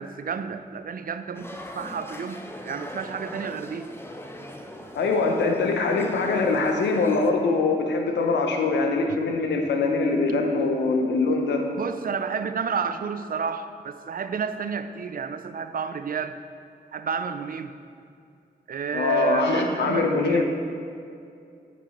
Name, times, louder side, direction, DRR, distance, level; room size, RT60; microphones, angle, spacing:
voice 1, 0.0-3.9 11.8-16.4 16.9-17.7 18.7-20.5, right 6 dB, 55° right, 10 dB, 0.5 m, -30 dB
sound 1, 1.3-7.3, left 1 dB, 15° left, 0.7 m, -41 dB
voice 2, 4.9-11.6 18.9-20.5, left 3 dB, 90° left, 3 dB, 0.7 m, -23 dB
7.9 x 4.9 x 4.3 m, 2.5 s
cardioid pair, 45°, 18 cm